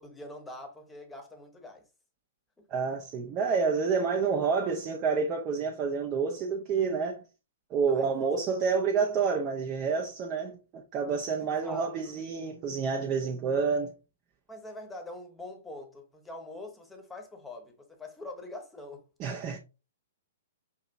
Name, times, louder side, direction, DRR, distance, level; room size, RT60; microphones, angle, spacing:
voice 1, 0.0-1.9 2.6-2.7 7.9-8.3 11.6-11.9 14.5-19.0, left 2 dB, 10° left, 1.0 m, -44 dB
voice 2, 2.7-7.2 7.7-13.9 19.2-19.6, right 5 dB, 30° right, 0.6 m, -29 dB
5.6 x 2.8 x 2.5 m
figure-of-eight pair, 115°, 0 cm